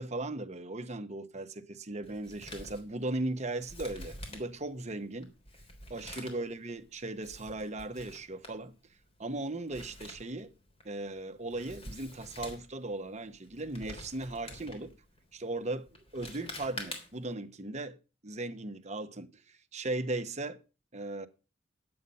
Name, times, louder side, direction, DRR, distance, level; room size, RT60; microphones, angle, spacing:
voice 1, 0.0-5.3 5.9-8.7 9.2-10.5 10.8-14.9 15.3-15.9 16.1-18.0 18.2-20.6 20.9-21.3, right 2 dB, 40° right, 1.0 m, -37 dB
Male speech man speaking, 2.0-17.3, left 1 dB, 35° left, 3.5 m, -48 dB
11.0 x 8.8 x 5.5 m
head